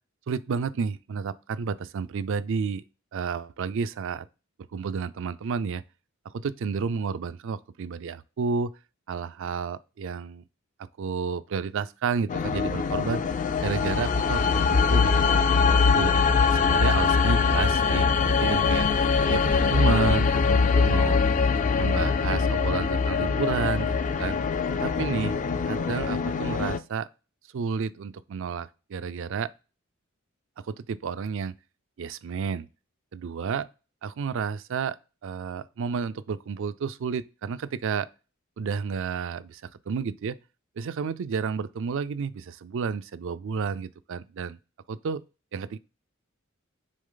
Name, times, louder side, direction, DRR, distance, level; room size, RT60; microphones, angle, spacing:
voice 1, 0.3-2.8 3.1-4.3 4.7-5.8 6.3-8.7 9.1-10.4 11.0-13.2 13.6-16.1 16.5-18.9 19.3-21.2 21.8-24.4 24.8-25.4 25.7-27.1 27.5-29.5 30.7-31.5 32.0-32.7 33.1-33.7 34.0-35.0 35.2-38.1 38.6-40.4 40.8-44.6 44.9-45.2 45.5-45.8, right 5 dB, 65° right, 0.4 m, -31 dB
sound 1, 12.3-26.8, left 5 dB, 40° left, 0.4 m, -23 dB
6.4 x 4.0 x 3.8 m
head